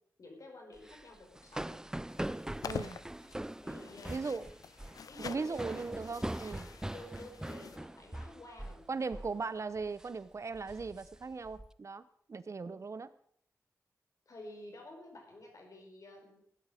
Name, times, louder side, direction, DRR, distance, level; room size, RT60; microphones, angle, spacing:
voice 1, 0.2-1.8 3.6-4.6 5.0-5.9 6.9-9.3 12.6-12.8 14.3-16.5, left 1 dB, 65° left, 2 dB, 4.7 m, -51 dB
sound 1, 0.8-8.8 9.1-9.4 9.8-10.1 10.5-11.7, right 1 dB, 10° right, 0.5 m, -42 dB
sound 2, 2.1-7.8, left 6 dB, 85° left, 0.6 m, -47 dB
voice 2, 2.6-3.0 4.1-4.5 5.2-6.7 8.9-12.0 12.3-13.1, right 4 dB, 55° right, 15 dB, 0.8 m, -38 dB
16.0 x 11.0 x 5.0 m, 0.66 s
cardioid pair, 60°, 6 cm